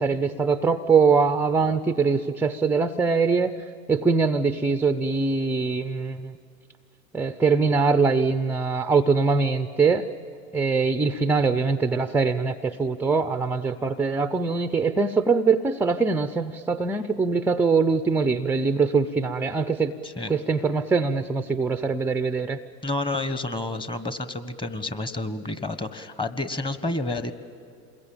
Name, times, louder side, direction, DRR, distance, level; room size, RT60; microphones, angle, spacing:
voice 1, 0.0-3.5 3.9-6.3 7.1-10.1 10.5-19.9 20.3-22.6, right 4 dB, 5° right, 11 dB, 0.5 m, -22 dB
voice 2, 22.8-27.3, left 2 dB, 10° left, 11 dB, 1.3 m, -30 dB
28.0 x 21.5 x 8.8 m, 2.5 s
hypercardioid pair, 110°, 41 cm